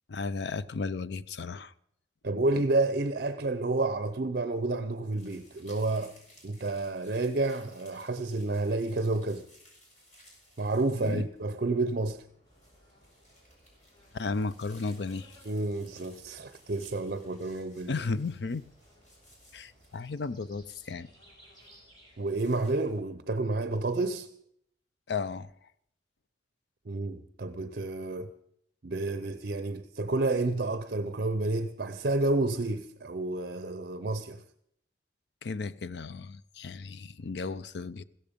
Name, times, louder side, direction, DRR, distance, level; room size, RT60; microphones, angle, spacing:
voice 1, 0.1-1.7 11.0-11.2 14.1-15.4 17.9-18.7 19.5-21.1 25.1-25.5 35.4-38.0, left 4 dB, 70° left, 0.5 m, -34 dB
voice 2, 2.2-6.1 6.4-9.4 10.6-12.2 15.5-17.9 22.2-24.3 26.9-28.3 28.8-34.4, right 2 dB, 55° right, 0.6 m, -30 dB
sound 1, 5.2-22.7, equal, 45° left, 5.6 m, -60 dB
sound 2, 12.4-23.0, equal, 25° left, 5.7 m, -60 dB
15.5 x 14.0 x 5.2 m
head